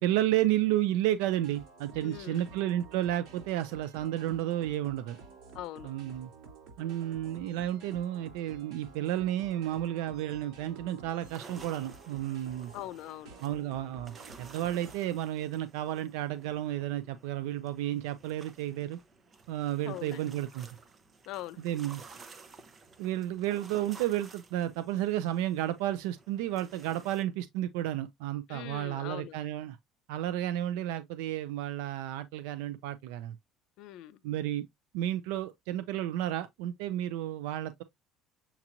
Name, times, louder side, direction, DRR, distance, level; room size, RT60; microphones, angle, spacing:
voice 1, 0.0-5.2 5.8-6.3 6.8-12.7 13.4-19.0 19.5-20.7 21.6-22.0 23.0-29.8 30.1-33.4 34.2-34.7 34.9-37.8, right 13 dB, 90° right, 0.4 m, -32 dB
sound 1, 1.3-15.0, right 4 dB, 65° right, 3.3 m, -52 dB
voice 2, 2.0-2.4 5.5-6.0 12.7-13.3 19.8-20.4 21.3-21.8 28.5-29.4 33.8-34.2, left 14 dB, 60° left, 0.5 m, -42 dB
sound 2, 11.2-27.2, right 4 dB, 25° right, 0.6 m, -54 dB
7.1 x 2.9 x 2.5 m
cardioid pair, 150°, 0 cm